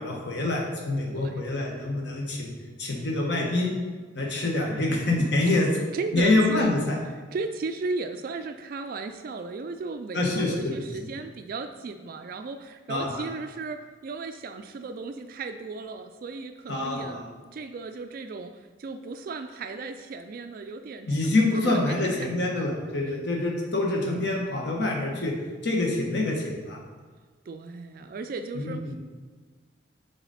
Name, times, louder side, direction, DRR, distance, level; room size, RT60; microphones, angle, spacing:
voice 1, 0.0-2.5 2.8-3.7 4.1-5.7 6.1-7.0 10.1-10.7 12.9-13.3 16.7-17.2 21.1-25.3 25.6-26.8 28.5-29.0, left 2 dB, 60° left, -1 dB, 1.3 m, -26 dB
voice 2, 1.1-1.5 5.4-5.7 5.9-6.7 7.3-17.2 17.5-22.3 27.5-29.0, right 3 dB, 50° right, 8 dB, 0.3 m, -36 dB
7.1 x 4.0 x 4.1 m, 1.4 s
head